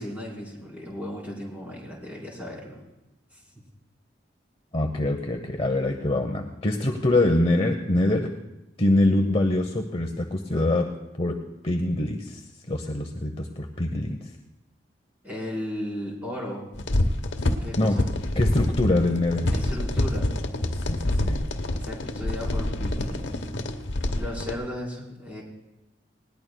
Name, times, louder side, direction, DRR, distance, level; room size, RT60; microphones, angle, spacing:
voice 1, 0.0-2.8 3.3-3.4 15.2-16.7 17.6-18.0 19.5-20.3 21.7-23.4 24.2-25.4, left 1 dB, 10° right, -4 dB, 4.1 m, -35 dB
voice 2, 4.7-8.3 8.8-10.9 11.2-11.4 11.6-14.3 17.8-18.0 18.4-19.6 20.7-21.4, left 1 dB, 30° left, 4 dB, 0.8 m, -24 dB
sound 1, 16.7-24.5, left 1 dB, 80° left, 1.0 m, -27 dB
20.0 x 18.5 x 2.2 m, 0.96 s
head